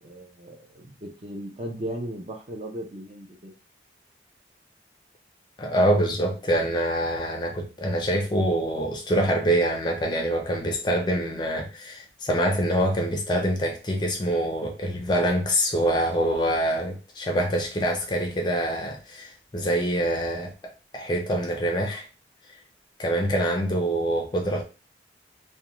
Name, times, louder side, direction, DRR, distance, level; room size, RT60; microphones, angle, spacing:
voice 1, 0.0-3.5, right 1 dB, 35° right, 0.5 m, -36 dB
voice 2, 5.6-22.1 23.0-24.6, right 1 dB, 25° left, 0.4 m, -25 dB
2.4 x 2.1 x 3.0 m
head